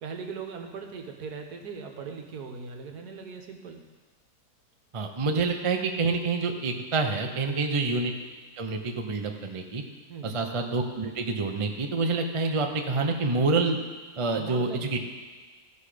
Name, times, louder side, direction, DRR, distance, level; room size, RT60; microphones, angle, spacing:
voice 1, 0.0-3.8 7.5-7.7 10.1-10.4 14.4-15.0, right 5 dB, 70° right, 3 dB, 1.5 m, -39 dB
voice 2, 4.9-8.1 8.6-9.8 10.2-13.8 14.2-15.0, right 3 dB, 35° right, 4 dB, 0.5 m, -27 dB
15.0 x 5.4 x 5.0 m, 1.4 s
omnidirectional pair, 1.7 m